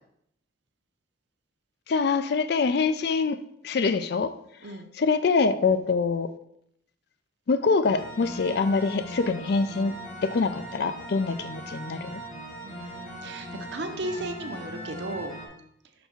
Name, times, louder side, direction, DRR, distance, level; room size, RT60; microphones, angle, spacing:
voice 1, 1.9-3.4 3.6-4.3 4.9-6.3 7.5-10.0 10.2-12.2, left 4 dB, 55° left, 11 dB, 0.4 m, -24 dB
sound 1, 7.8-15.5, equal, 40° left, 1.5 m, -40 dB
voice 2, 12.6-15.3, right 2 dB, 65° right, 6 dB, 0.7 m, -35 dB
6.0 x 3.5 x 5.6 m, 0.73 s
head